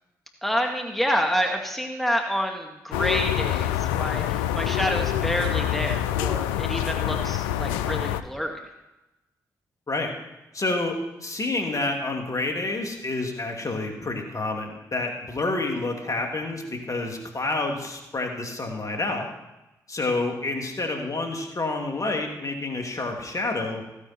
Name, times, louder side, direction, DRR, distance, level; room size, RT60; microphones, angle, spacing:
voice 1, 0.4-8.6, equal, ahead, 2 dB, 1.9 m, -28 dB
sound 1, 2.9-8.2, left 12 dB, 90° left, 0.4 m, -26 dB
voice 2, 10.5-19.3 19.9-23.8, left 2 dB, 40° left, 2 dB, 2.8 m, -28 dB
15.0 x 9.7 x 4.4 m, 0.98 s
hypercardioid pair, 40°, 9 cm